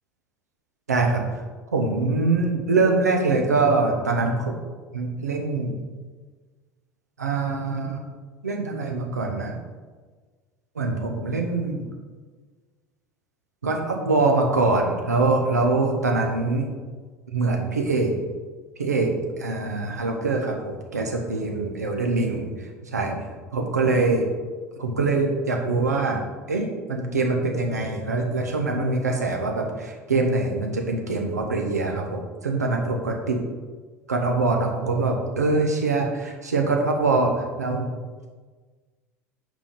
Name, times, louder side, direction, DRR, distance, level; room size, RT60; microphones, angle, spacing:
voice 1, 0.9-1.2 1.7-4.5 4.9-5.7 7.2-8.0 8.4-9.6 10.8-11.8 13.6-16.7 17.3-18.2 18.8-22.5 22.8-23.2 23.5-24.3 24.8-26.2 26.5-33.4 34.1-37.9, right 3 dB, 80° right, 2 dB, 1.0 m, -24 dB
5.6 x 5.1 x 5.2 m, 1.4 s
figure-of-eight pair, 70°, 9 cm